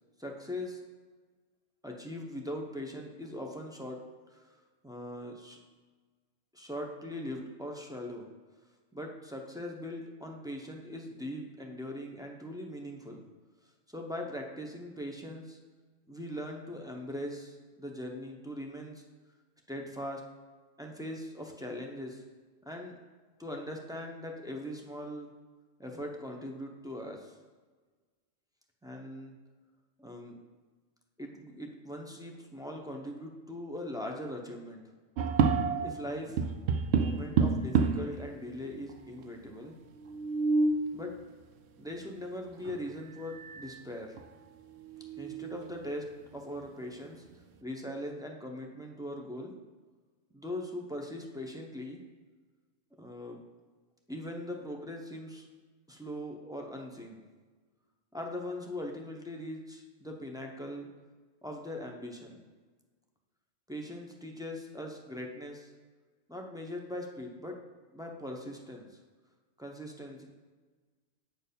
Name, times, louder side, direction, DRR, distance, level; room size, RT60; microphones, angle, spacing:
voice 1, 0.2-0.8 1.8-4.0 4.3-5.6 6.5-8.3 8.9-13.3 13.9-15.6 16.1-19.0 19.7-20.2 20.8-22.2 22.6-22.9 23.4-25.3 25.8-27.4 28.8-29.3 30.0-30.4 31.2-34.8 35.8-36.4 36.9-39.8 40.9-41.1 41.8-44.2 45.2-46.0 46.3-49.5 50.3-52.0 53.0-53.4 54.1-55.5 55.9-57.2 58.1-60.9 61.4-62.4 63.7-65.7 66.3-67.6 67.9-69.0 69.6-70.2, left 1 dB, 5° right, 0 dB, 0.4 m, -40 dB
sound 1, 35.2-36.0 36.4-38.2 38.9-39.0 39.2-39.3 40.0-40.9 42.6-42.8 43.3-43.7 44.2-44.3 44.8-45.7, right 5 dB, 65° right, 0.7 m, -28 dB
7.8 x 4.5 x 5.2 m, 1.4 s
omnidirectional pair, 1.3 m